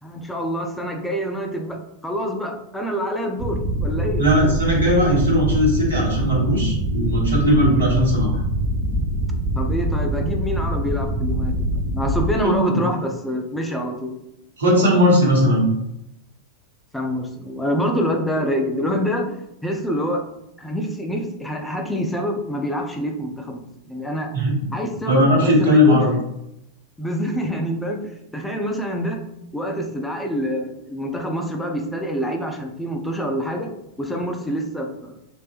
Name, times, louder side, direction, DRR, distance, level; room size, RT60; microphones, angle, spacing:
voice 1, 0.0-4.2 9.5-14.2 16.9-20.2 20.6-24.3 24.7-26.0 27.0-29.2 29.5-35.1, equal, 5° left, 2 dB, 0.5 m, -26 dB
sound 1, 3.4-12.3, right 1 dB, 35° right, 0.8 m, -24 dB
voice 2, 4.2-8.4 12.4-12.8 14.6-15.7 24.3-24.7 25.1-26.1, equal, 70° right, -4 dB, 1.2 m, -18 dB
3.3 x 3.2 x 2.5 m, 0.84 s
figure-of-eight pair, 90°, 0 cm